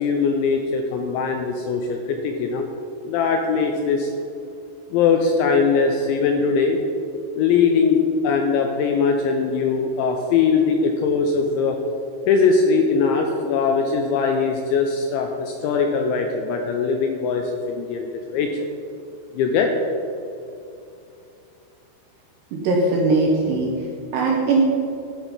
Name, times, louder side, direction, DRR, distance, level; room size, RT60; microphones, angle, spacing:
voice 1, 0.0-2.7 3.1-4.1 4.9-6.8 7.4-11.8 12.3-18.7 19.3-19.7, left 5 dB, 85° left, 3 dB, 2.7 m, -21 dB
voice 2, 22.5-23.7 24.1-24.6, right 3 dB, 75° right, -2 dB, 2.6 m, -19 dB
13.0 x 4.4 x 5.1 m, 2.6 s
omnidirectional pair, 5.8 m